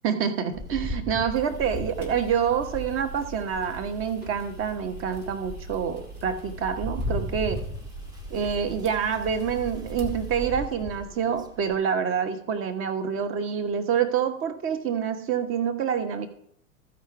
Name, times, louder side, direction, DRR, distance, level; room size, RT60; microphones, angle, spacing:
voice 1, 0.0-7.6 8.3-16.3, right 7 dB, 30° right, 9 dB, 1.1 m, -27 dB
Rain, 0.5-4.0 4.6-4.7 5.2-11.8, equal, 10° right, 0.8 m, -37 dB
sound 1, 1.3-10.5, right 1 dB, 90° right, 2.0 m, -42 dB
14.5 x 5.1 x 4.6 m, 0.68 s
figure-of-eight pair, 90°, 42 cm